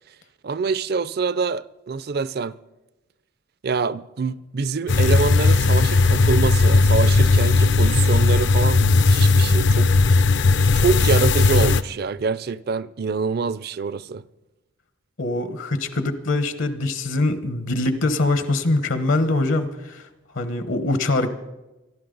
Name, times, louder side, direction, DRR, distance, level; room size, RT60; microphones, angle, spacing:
voice 1, 0.4-2.5 3.6-9.9 10.7-14.2, right 5 dB, 50° right, 0.4 m, -25 dB
sound 1, 4.9-11.8, left 3 dB, 55° left, 0.5 m, -17 dB
voice 2, 15.2-20.0 20.3-21.3, left 2 dB, 70° left, 1.1 m, -23 dB
26.0 x 12.0 x 3.9 m
head